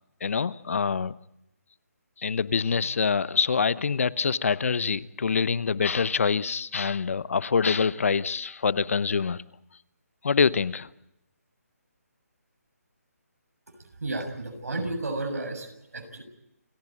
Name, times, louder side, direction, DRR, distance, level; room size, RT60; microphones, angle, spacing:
voice 1, 0.2-1.1 2.2-9.4 10.2-10.9, left 5 dB, 55° left, 0.9 m, -25 dB
voice 2, 14.0-16.2, right 2 dB, 70° right, 6.8 m, -32 dB
29.0 x 15.0 x 8.7 m
hypercardioid pair, 160°, 9 cm